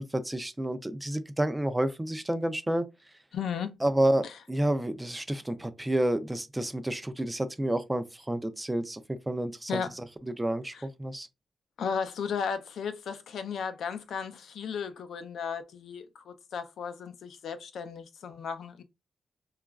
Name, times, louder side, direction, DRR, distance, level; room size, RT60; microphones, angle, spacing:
voice 1, 0.0-2.9 3.8-10.0 10.4-11.3, right 1 dB, 15° right, 0.4 m, -30 dB
voice 2, 3.3-3.8 4.2-4.4 9.7-10.0 10.7-10.8 11.8-18.8, left 6 dB, 85° left, 0.4 m, -35 dB
2.9 x 2.3 x 2.3 m
cardioid pair, 85°, 0 cm